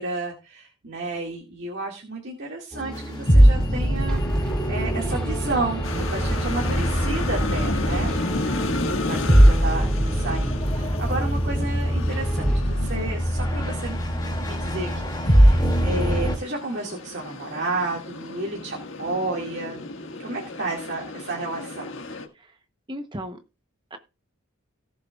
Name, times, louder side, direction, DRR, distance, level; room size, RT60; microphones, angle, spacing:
voice 1, 0.0-8.1 9.1-19.8 20.2-21.9, right 2 dB, 55° right, -1 dB, 2.1 m, -32 dB
sound 1, 2.7-12.6, right 1 dB, 5° left, 2.2 m, -34 dB
sound 2, 2.9-16.4, equal, 20° left, 2.4 m, -22 dB
sound 3, 5.8-22.3, left 3 dB, 60° left, 1.6 m, -34 dB
voice 2, 22.9-23.4 23.9-24.0, equal, 20° right, 8 dB, 0.8 m, -37 dB
18.0 x 7.5 x 2.4 m, 0.29 s
head